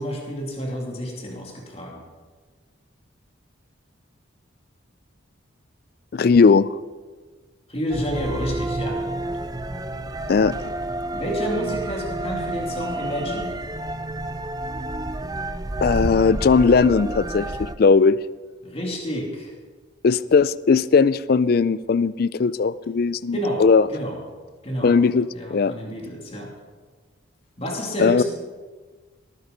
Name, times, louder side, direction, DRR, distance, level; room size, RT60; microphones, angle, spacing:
voice 1, 0.0-2.0 7.7-9.0 11.1-13.5 18.6-19.5 23.3-23.6 23.9-24.2 24.6-24.9 25.3-26.5 27.6-28.2, equal, 30° left, -1 dB, 2.8 m, -29 dB
voice 2, 6.1-6.7 10.3-10.7 15.8-18.2 20.0-23.9 24.8-25.7 28.0-28.2, left 5 dB, 45° left, 18 dB, 0.3 m, -18 dB
sound 1, 7.9-17.8, right 2 dB, 20° right, 0.5 m, -30 dB
18.5 x 9.3 x 5.4 m, 1.4 s
head